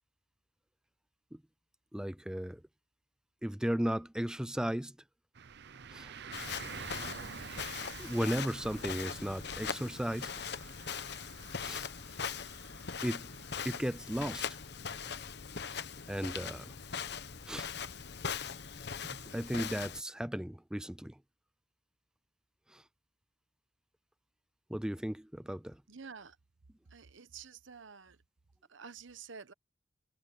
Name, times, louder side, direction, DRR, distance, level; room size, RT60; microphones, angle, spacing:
voice 1, 1.9-2.6 3.4-5.0 5.9-6.1 8.0-10.3 11.6-11.8 13.0-13.3 13.6-14.5 15.1-15.2 16.1-16.7 17.5-17.7 19.1-21.2 22.7-22.8 24.7-25.8, equal, 5° right, 0.3 m, -35 dB
sound 1, 5.4-18.4, right 6 dB, 60° right, 0.7 m, -50 dB
Walk footsteps, 6.3-20.0, left 6 dB, 60° left, 1.1 m, -41 dB
voice 2, 25.9-26.4 26.9-28.2 28.7-29.5, right 6 dB, 75° right, 1.0 m, -49 dB
head